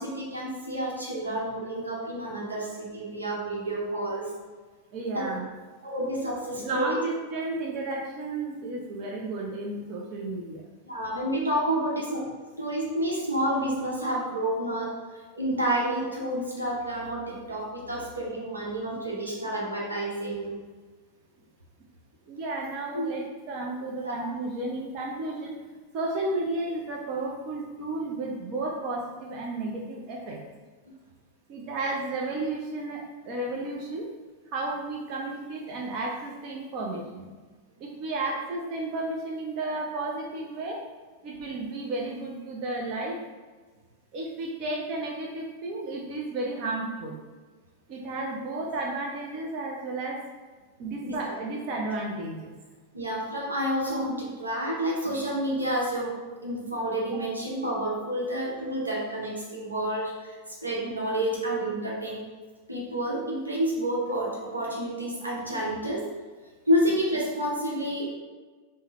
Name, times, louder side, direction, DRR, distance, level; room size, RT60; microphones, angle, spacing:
voice 1, 0.0-4.3 5.1-5.2 5.8-6.9 10.8-12.3 12.6-14.9 15.3-20.5 22.9-23.1 24.0-24.1 51.0-51.1 52.9-56.1 56.4-60.4 60.6-62.2 62.7-66.0 66.7-68.1, right 1 dB, 80° right, -4 dB, 0.9 m, -29 dB
voice 2, 4.9-5.5 6.6-10.6 22.3-25.6 25.9-30.4 31.5-34.1 34.5-37.3 37.8-40.8 41.2-43.2 44.1-47.1 47.9-50.2 50.8-52.5 57.1-57.2, right 2 dB, 40° right, -1 dB, 0.5 m, -33 dB
3.6 x 2.1 x 4.2 m, 1.4 s
figure-of-eight pair, 90°, 0 cm